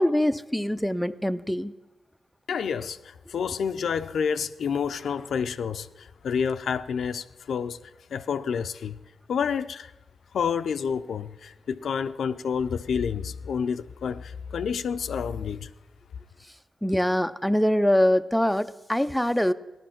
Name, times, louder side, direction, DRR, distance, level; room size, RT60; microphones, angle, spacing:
voice 1, 0.0-1.7 16.8-19.5, left 1 dB, 5° left, 0.4 m, -23 dB
voice 2, 2.5-7.8 8.1-9.0 9.3-9.9 10.3-15.7, left 6 dB, 90° left, 0.5 m, -29 dB
15.0 x 11.0 x 5.8 m
wide cardioid pair, 125°, 0 cm